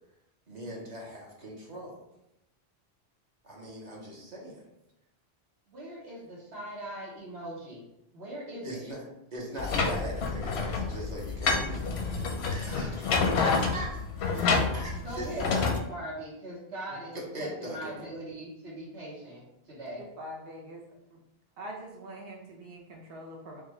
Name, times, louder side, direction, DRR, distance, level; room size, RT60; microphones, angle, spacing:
voice 1, 0.5-1.9 3.4-4.6 6.4-6.5 8.6-9.0 9.3-14.0 14.3-15.3 16.9-18.1, right 1 dB, 45° right, -3 dB, 1.1 m, -40 dB
voice 2, 5.7-7.8 8.1-8.8 12.7-12.9 15.0-20.0, right 1 dB, 90° right, -6 dB, 1.4 m, -40 dB
sound 1, 9.6-15.8, left 4 dB, 90° left, 0.9 m, -28 dB
voice 3, 20.0-20.8 21.1-21.2 21.6-23.6, equal, 70° right, -1 dB, 0.9 m, -43 dB
4.9 x 2.4 x 3.1 m, 0.85 s
omnidirectional pair, 1.1 m